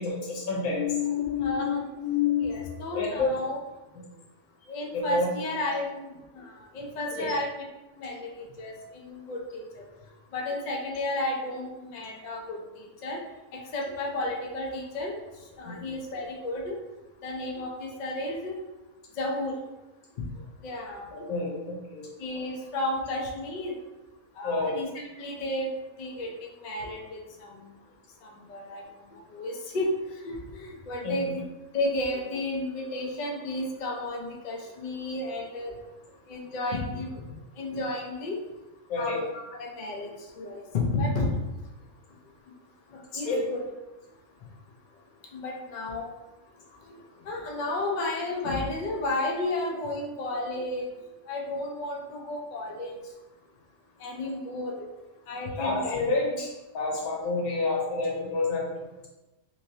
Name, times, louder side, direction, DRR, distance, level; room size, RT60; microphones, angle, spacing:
voice 1, 0.0-2.6 2.9-3.3 5.1-5.3 7.1-7.2 15.6-15.8 21.1-22.1 24.4-24.7 31.0-31.2 38.9-39.2 43.1-43.4 55.5-58.9, left 4 dB, 85° left, -3 dB, 1.3 m, -29 dB
voice 2, 1.4-1.8 2.4-3.6 4.7-6.5 6.7-7.6 8.0-8.3 8.6-9.6 10.3-13.2 13.7-15.2 15.6-16.7 17.2-18.6 19.2-19.5 20.6-21.1 22.2-23.7 24.4-25.7 26.0-27.5 28.5-28.8 29.3-29.9 30.2-31.4 31.7-35.7 36.3-37.3 37.6-38.4 39.0-40.1 40.4-41.3 43.1-43.6 45.3-46.1 47.3-50.9 51.3-52.9 54.0-54.9 55.3-56.1 56.3-56.4, left 2 dB, 70° left, 0 dB, 0.4 m, -32 dB
3.0 x 2.7 x 2.7 m, 1.1 s
omnidirectional pair, 1.5 m